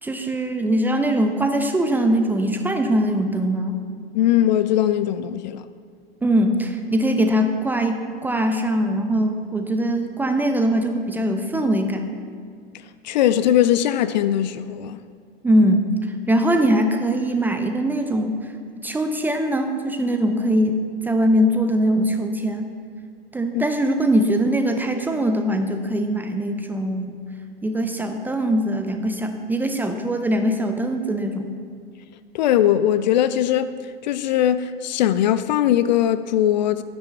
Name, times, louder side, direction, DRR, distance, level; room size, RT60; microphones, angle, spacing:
voice 1, 0.0-3.8 6.2-12.1 15.4-22.7 23.3-27.2 27.6-31.5, right 1 dB, 5° right, 0.4 m, -22 dB
voice 2, 4.1-5.7 13.0-15.0 23.5-23.7 32.3-36.8, left 11 dB, 45° left, 0.4 m, -20 dB
12.0 x 9.6 x 3.4 m
figure-of-eight pair, 100°, 31 cm